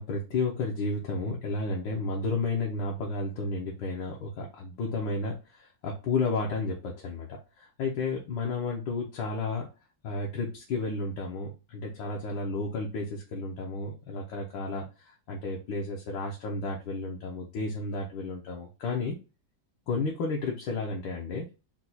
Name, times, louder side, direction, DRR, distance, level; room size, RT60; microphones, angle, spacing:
voice 1, 0.0-9.7 10.0-19.2 19.9-21.5, left 3 dB, 75° left, -1 dB, 1.5 m, -32 dB
4.5 x 2.3 x 4.0 m, 0.30 s
omnidirectional pair, 2.0 m